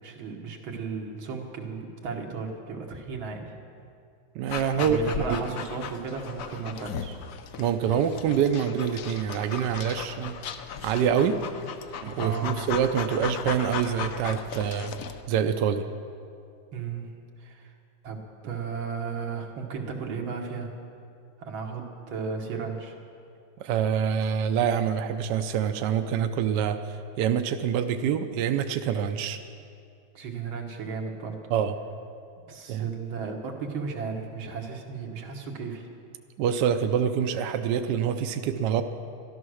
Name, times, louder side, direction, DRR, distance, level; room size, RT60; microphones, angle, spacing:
voice 1, 0.0-3.5 4.8-7.2 12.2-12.5 16.7-17.1 17.4-17.7 18.0-20.7 21.4-23.0 30.1-31.4 32.5-35.9, right 5 dB, 90° right, 1 dB, 2.2 m, -35 dB
voice 2, 4.3-5.0 5.3-5.4 7.6-10.4 10.8-11.4 12.0-14.9 15.3-15.8 23.6-26.8 27.2-29.4 31.5-31.7 32.7-32.9 36.4-38.8, right 8 dB, 70° right, 7 dB, 1.2 m, -26 dB
Dog, 4.5-15.2, left 7 dB, 70° left, 0.8 m, -37 dB
13.0 x 12.5 x 6.3 m, 2.4 s
omnidirectional pair, 2.1 m